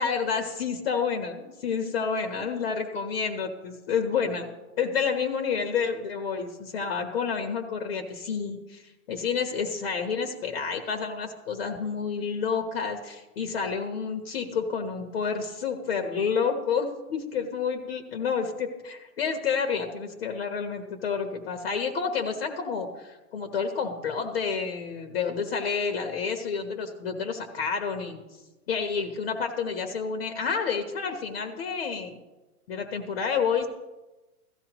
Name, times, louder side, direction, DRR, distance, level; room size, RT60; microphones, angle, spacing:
voice 1, 0.0-4.5 4.8-8.8 9.1-28.2 28.7-32.2 32.7-33.7, left 6 dB, 40° left, 5 dB, 1.2 m, -29 dB
16.5 x 13.5 x 3.0 m, 1.1 s
hypercardioid pair, 170°, 44 cm